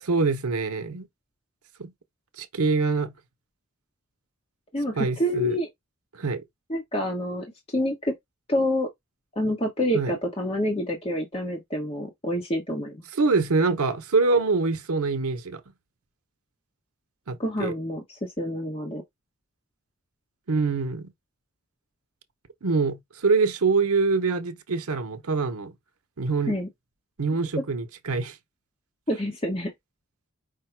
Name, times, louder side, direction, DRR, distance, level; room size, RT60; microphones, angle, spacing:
voice 1, 0.0-1.1 1.8-1.9 2.4-3.1 4.9-5.6 6.1-6.4 9.9-10.2 13.1-15.6 17.3-17.7 20.5-21.1 22.6-25.7 26.2-26.6 27.2-28.4, right 4 dB, 80° right, 0.8 m, -25 dB
voice 2, 4.7-5.7 6.7-7.4 7.7-8.1 8.5-8.9 9.4-13.1 17.4-19.0 26.5-26.7 29.1-29.7, equal, 25° left, 0.9 m, -27 dB
5.1 x 2.2 x 4.5 m
head